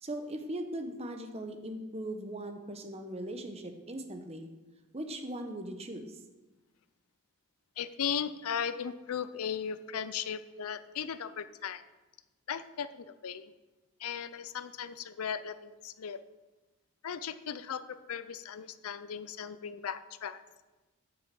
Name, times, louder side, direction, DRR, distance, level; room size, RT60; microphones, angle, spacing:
voice 1, 0.0-4.5 4.9-6.2, right 1 dB, 30° right, 6 dB, 0.9 m, -39 dB
voice 2, 7.8-11.8 12.5-13.5 14.0-16.2 17.0-20.4, left 7 dB, 80° left, 14 dB, 0.5 m, -37 dB
7.1 x 6.4 x 7.6 m, 1.1 s
head